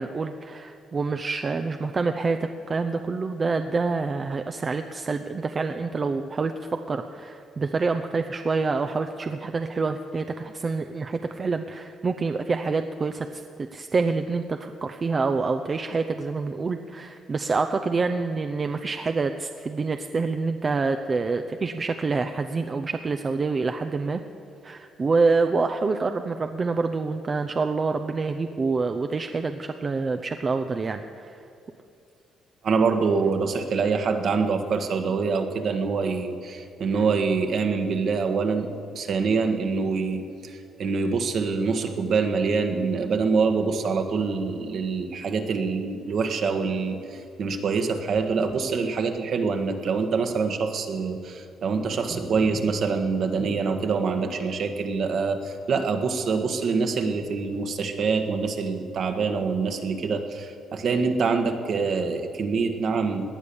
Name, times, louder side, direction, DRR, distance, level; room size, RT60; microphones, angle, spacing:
voice 1, 0.0-24.2 24.6-31.4, right 4 dB, 35° right, 7 dB, 0.6 m, -27 dB
voice 2, 32.6-63.3, right 4 dB, 60° right, 5 dB, 1.6 m, -25 dB
18.5 x 10.0 x 7.1 m, 2.7 s
cardioid pair, 90°, 0 cm